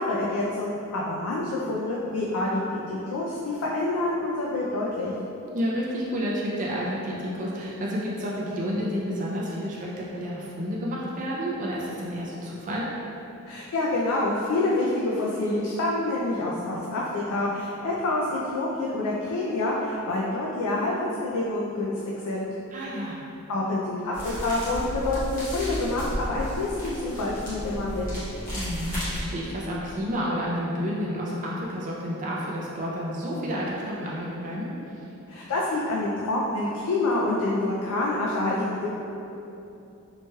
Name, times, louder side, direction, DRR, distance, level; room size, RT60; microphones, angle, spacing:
voice 1, 0.0-5.1 13.5-21.9 22.2-22.5 23.5-28.1 35.3-38.9, left 2 dB, 80° left, -4 dB, 0.3 m, -27 dB
voice 2, 5.5-12.9 22.7-23.2 28.5-34.7, equal, 35° right, -5 dB, 0.4 m, -30 dB
sound 1, 24.1-29.2, equal, 40° left, 1.1 m, -33 dB
3.0 x 2.8 x 2.2 m, 2.8 s
head